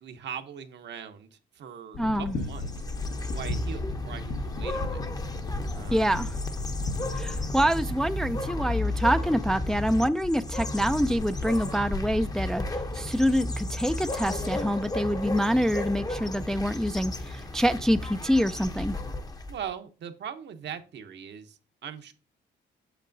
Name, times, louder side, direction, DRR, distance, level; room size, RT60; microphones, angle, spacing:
voice 1, 0.0-2.8 3.3-5.0 5.7-6.1 19.5-22.1, right 8 dB, 60° right, 0.9 m, -40 dB
sound 1, 1.9-7.4, left 3 dB, 85° left, 1.5 m, -37 dB
voice 2, 2.0-2.3 5.9-6.3 7.2-12.6 12.9-19.0, equal, 5° left, 0.4 m, -26 dB
sound 2, 2.3-19.6, left 2 dB, 20° left, 0.7 m, -33 dB
8.2 x 6.7 x 2.6 m
cardioid pair, 90°, 20 cm